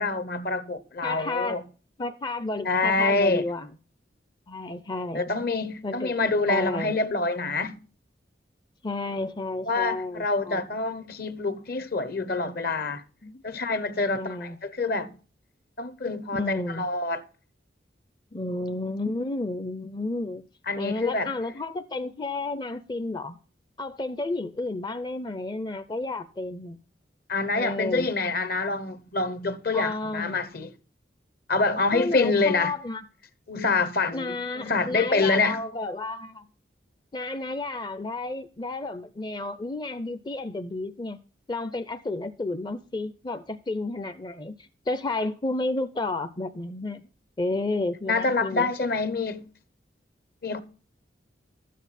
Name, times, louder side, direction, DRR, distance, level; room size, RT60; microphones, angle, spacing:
voice 1, 0.0-1.6 2.6-3.5 5.1-7.8 9.7-13.0 13.4-15.1 15.8-17.2 20.7-21.3 27.3-30.7 31.5-32.7 33.5-35.6 48.1-49.4 50.4-50.6, left 3 dB, 55° left, 1.0 m, -26 dB
voice 2, 1.0-1.6 2.0-3.7 4.5-5.3 5.8-6.2 6.5-6.9 8.8-10.6 13.2-13.4 14.1-14.6 16.3-16.9 18.3-20.4 20.8-23.4 23.8-26.8 27.6-28.1 29.7-30.5 31.9-33.1 34.1-36.5 37.1-41.2 41.5-47.0 47.4-48.7, left 2 dB, 25° left, 0.5 m, -31 dB
13.0 x 9.2 x 4.2 m
head